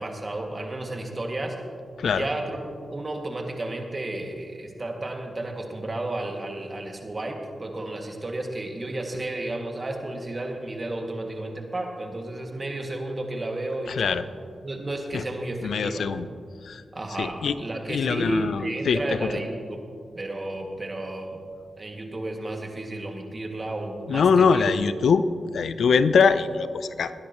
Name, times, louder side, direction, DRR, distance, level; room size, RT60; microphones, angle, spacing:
voice 1, 0.0-1.6 2.0-14.2 14.6-16.1 16.9-19.8 20.1-21.4 21.8-24.7, right 2 dB, 40° right, 2 dB, 2.1 m, -32 dB
voice 2, 13.9-14.2 15.1-15.2 15.6-16.3 16.6-16.8 17.2-17.6 17.9-19.3 24.1-25.2 25.5-27.1, left 5 dB, 80° left, 13 dB, 0.5 m, -22 dB
20.0 x 10.5 x 3.1 m, 2.2 s
cardioid pair, 45°, 0 cm